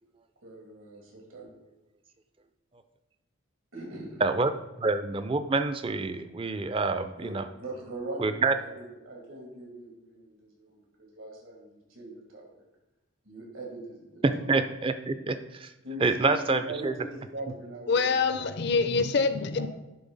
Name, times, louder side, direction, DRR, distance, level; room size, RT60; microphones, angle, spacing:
voice 1, 0.4-1.5 3.7-4.2 7.2-12.5 13.2-14.4 15.8-18.4 19.6-19.7, right 2 dB, 85° right, -1 dB, 2.4 m, -41 dB
voice 2, 4.2-4.5 4.8-7.5 8.2-8.6 14.2-15.7 16.0-16.9, right 3 dB, 25° right, 10 dB, 0.4 m, -27 dB
voice 3, 17.9-19.7, left 4 dB, 55° left, 11 dB, 0.5 m, -25 dB
11.0 x 3.7 x 4.0 m, 0.99 s
head